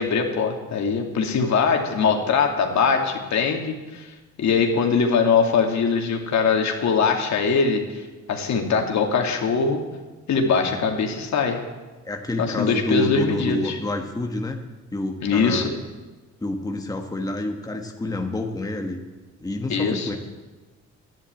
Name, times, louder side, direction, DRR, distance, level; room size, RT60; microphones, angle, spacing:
voice 1, 0.0-4.1 4.4-9.8 10.3-11.6 12.4-13.8 15.2-15.7 19.7-20.1, left 5 dB, 65° left, 2 dB, 2.4 m, -22 dB
voice 2, 12.0-14.6 14.9-15.7 16.4-19.0 19.4-20.2, left 2 dB, 10° left, 2 dB, 1.5 m, -28 dB
11.5 x 10.5 x 9.0 m, 1.2 s
cardioid pair, 90°, 30 cm